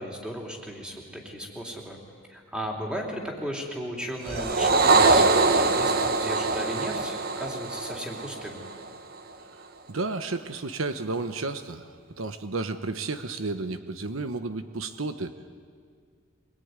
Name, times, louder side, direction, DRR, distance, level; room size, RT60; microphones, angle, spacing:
voice 1, 0.0-2.0 2.3-8.6, equal, 5° right, 0 dB, 3.5 m, -36 dB
sound 1, 4.3-8.9, right 3 dB, 45° right, 1.3 m, -23 dB
voice 2, 9.9-11.9 12.2-15.5, right 3 dB, 75° right, 9 dB, 1.1 m, -32 dB
24.5 x 22.0 x 9.7 m, 2.1 s
head